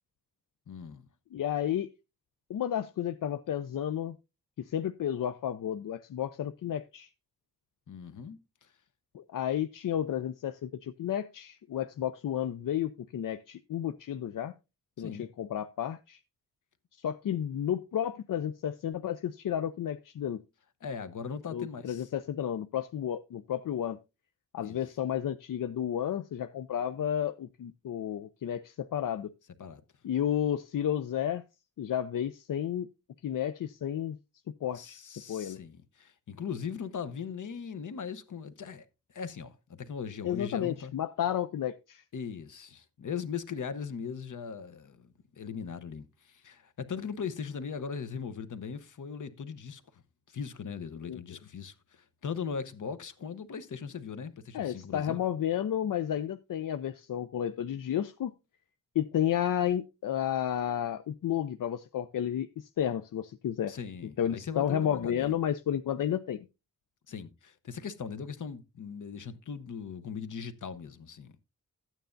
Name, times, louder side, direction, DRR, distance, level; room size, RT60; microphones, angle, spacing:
voice 1, 0.7-1.0 7.9-8.7 15.0-15.3 20.8-22.1 24.6-24.8 29.6-29.8 34.7-40.9 42.1-50.0 50.3-55.2 63.7-65.3 67.1-71.4, left 6 dB, 70° left, 0.8 m, -39 dB
voice 2, 1.3-1.9 2.5-4.2 4.6-7.1 9.1-14.5 15.0-16.2 17.0-20.4 21.5-24.0 24.5-29.3 30.0-31.4 31.8-32.9 33.2-34.2 34.6-35.0 35.3-35.6 40.2-42.0 51.1-51.2 54.5-58.3 59.0-63.7 64.2-66.5, left 10 dB, 85° left, 0.5 m, -32 dB
13.0 x 9.1 x 2.5 m
wide cardioid pair, 145°, 32 cm